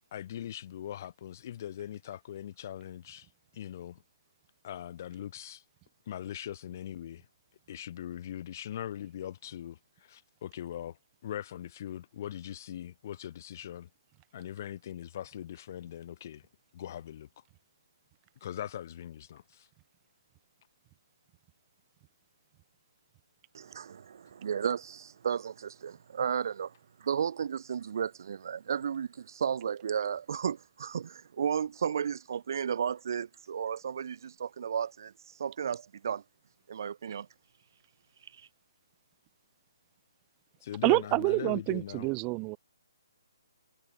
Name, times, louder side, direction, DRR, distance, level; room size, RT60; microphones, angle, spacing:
voice 1, 0.1-3.3 3.5-4.0 4.6-5.6 6.1-7.3 7.7-11.0 11.2-13.9 14.3-16.5 16.7-17.3 18.4-19.7 40.6-42.1, left 11 dB, 45° left, 6.1 m, -41 dB
voice 2, 23.5-36.2 36.7-37.3 38.3-38.5, right 7 dB, 55° right, 1.6 m, -33 dB
voice 3, 40.8-42.6, right 28 dB, 20° right, 1.4 m, -27 dB
hypercardioid pair, 155°, 2 cm